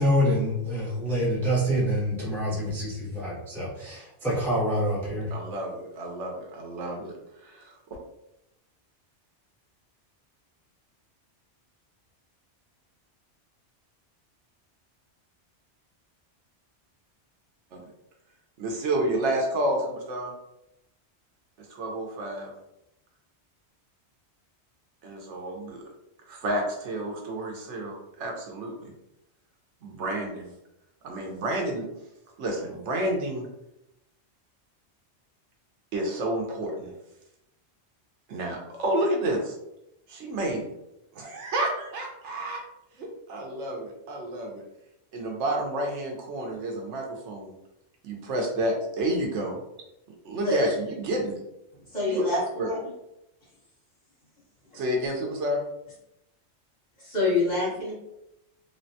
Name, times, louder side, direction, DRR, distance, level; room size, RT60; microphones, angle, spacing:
voice 1, 0.0-5.3, equal, ahead, -7 dB, 0.5 m, -26 dB
voice 2, 5.3-7.1 7.4-7.7 17.7-17.8 18.6-20.3 21.7-22.5 25.0-25.8 26.3-28.9 29.8-30.5 31.0-31.8 32.4-33.5 35.9-37.0 38.3-39.5 40.1-40.7 41.1-42.6 43.0-44.6 45.1-47.5 48.0-49.6 50.2-51.4 52.1-52.7 54.7-55.6, right 1 dB, 90° right, 1 dB, 1.0 m, -30 dB
voice 3, 51.9-52.8 57.0-57.9, left 3 dB, 40° left, -8 dB, 1.4 m, -27 dB
3.4 x 2.1 x 2.7 m, 0.86 s
omnidirectional pair, 1.2 m